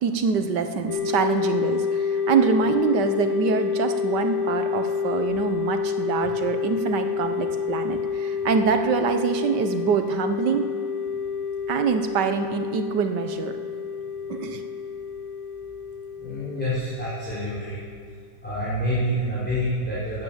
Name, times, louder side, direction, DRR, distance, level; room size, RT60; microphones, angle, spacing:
voice 1, 0.0-10.7 11.7-13.6 14.3-14.6, right 6 dB, 65° right, 7 dB, 1.4 m, -25 dB
sound 1, 0.9-18.2, left 6 dB, 45° left, 2.2 m, -28 dB
voice 2, 16.2-17.8 18.4-20.2, equal, 5° left, -9 dB, 3.6 m, -27 dB
17.0 x 9.4 x 7.3 m, 2.1 s
omnidirectional pair, 2.2 m